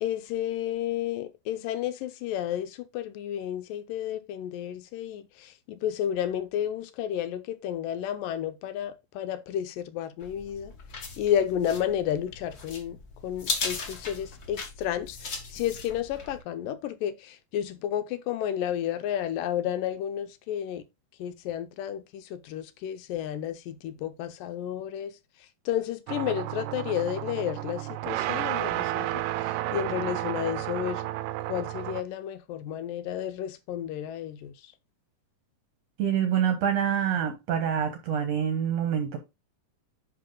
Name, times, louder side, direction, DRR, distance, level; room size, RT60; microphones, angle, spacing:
voice 1, 0.0-10.7 11.2-20.8 21.2-25.1 25.7-31.0 31.5-34.5, left 10 dB, 80° left, 2.3 m, -32 dB
sound 1, 10.2-16.4, left 4 dB, 45° left, 1.2 m, -37 dB
sound 2, 26.1-32.0, right 15 dB, 80° right, 2.1 m, -32 dB
voice 2, 36.0-39.2, right 8 dB, 65° right, 1.8 m, -26 dB
10.5 x 3.7 x 3.8 m
omnidirectional pair, 4.1 m